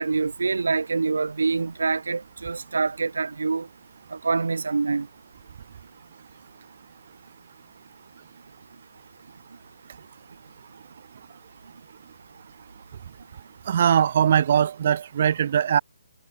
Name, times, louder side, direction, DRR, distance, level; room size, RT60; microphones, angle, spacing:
voice 1, 0.0-3.7 4.1-5.1, right 4 dB, 85° right, 2.2 m, -25 dB
voice 2, 13.7-15.8, right 9 dB, 40° right, 2.1 m, -21 dB
hypercardioid pair, 165°, 0 cm